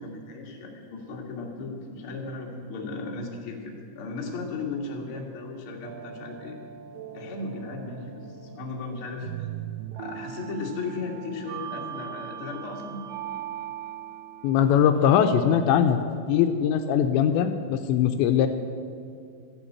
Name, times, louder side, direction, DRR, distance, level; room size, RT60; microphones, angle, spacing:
voice 1, 0.0-6.6 7.1-9.3 10.0-13.0, left 3 dB, 55° left, -1 dB, 1.5 m, -36 dB
sound 1, 5.8-15.9, right 10 dB, 85° right, 3.0 m, -40 dB
voice 2, 14.4-16.0 16.3-18.5, left 8 dB, 80° left, 7 dB, 2.8 m, -21 dB
13.5 x 8.1 x 8.5 m, 2.4 s
omnidirectional pair, 5.3 m